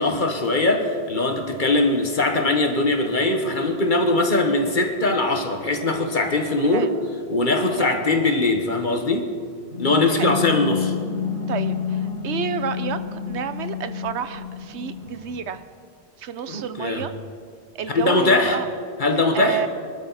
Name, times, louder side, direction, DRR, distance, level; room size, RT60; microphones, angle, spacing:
voice 1, 0.0-6.9 7.3-9.3 9.8-10.9 16.5-17.1 17.9-18.6 19.0-19.6, left 2 dB, 45° left, 4 dB, 1.6 m, -21 dB
voice 2, 6.6-7.0 7.7-8.0 10.1-10.4 11.5-15.6 16.2-17.1 17.7-18.6 19.3-19.7, right 8 dB, 90° right, 12 dB, 1.1 m, -30 dB
sound 1, 9.7-15.4, left 6 dB, 55° right, 5.3 m, -29 dB
24.0 x 12.5 x 4.2 m, 2.2 s
omnidirectional pair, 1.1 m